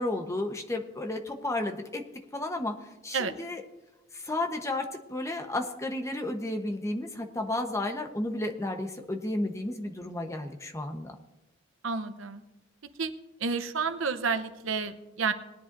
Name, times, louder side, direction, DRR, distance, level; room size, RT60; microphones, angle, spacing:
voice 1, 0.0-2.0 2.3-3.6 4.1-11.1, left 1 dB, 15° left, 3 dB, 1.1 m, -32 dB
voice 2, 11.8-12.4 13.0-13.1 13.4-15.3, right 5 dB, 90° right, 10 dB, 0.9 m, -30 dB
20.0 x 10.5 x 2.7 m, 1.0 s
head